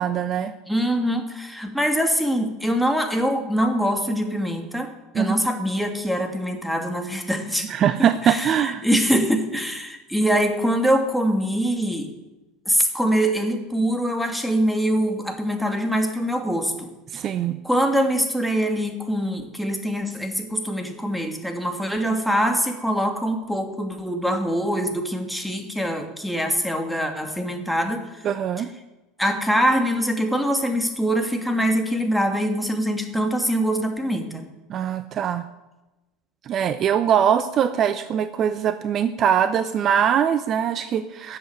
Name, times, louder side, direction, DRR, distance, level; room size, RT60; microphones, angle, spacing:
voice 1, 0.0-0.5 5.1-5.4 7.7-8.9 17.1-17.6 28.2-28.7 34.7-35.4 36.5-41.4, right 8 dB, 45° right, 12 dB, 0.7 m, -22 dB
voice 2, 0.7-7.7 8.0-12.1 12.7-16.9 17.6-28.3 29.2-34.5, equal, ahead, 4 dB, 2.6 m, -24 dB
13.5 x 8.0 x 9.8 m, 1.1 s
hypercardioid pair, 80°, 0 cm